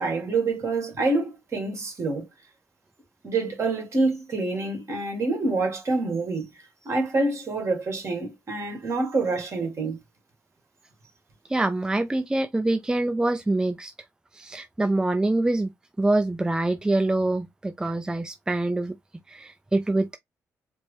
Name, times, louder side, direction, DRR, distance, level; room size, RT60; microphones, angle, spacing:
voice 1, 0.0-2.3 3.2-6.5 6.9-10.0, right 3 dB, 50° right, 1.7 m, -26 dB
voice 2, 11.5-13.9 14.3-15.7 16.0-19.0 19.3-20.2, right 2 dB, 10° right, 0.4 m, -25 dB
4.4 x 2.1 x 3.2 m
supercardioid pair, 65°, 6 cm